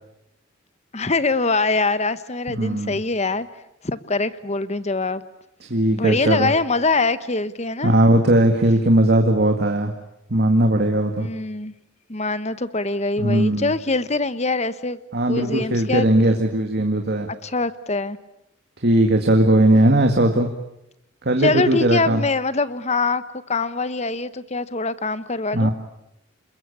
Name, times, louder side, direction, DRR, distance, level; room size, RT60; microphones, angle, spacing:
voice 1, 0.9-3.5 3.8-5.2 5.9-8.0 11.2-11.7 12.1-15.0 15.3-16.1 17.3-18.2 21.4-25.7, left 3 dB, 35° left, 14 dB, 1.1 m, -23 dB
voice 2, 2.5-3.0 5.7-6.5 7.8-9.9 10.3-11.3 13.2-13.7 15.1-17.3 18.8-20.5 21.3-22.2 25.5-25.7, right 1 dB, 50° right, 4 dB, 2.0 m, -18 dB
28.0 x 21.5 x 8.6 m, 0.83 s
head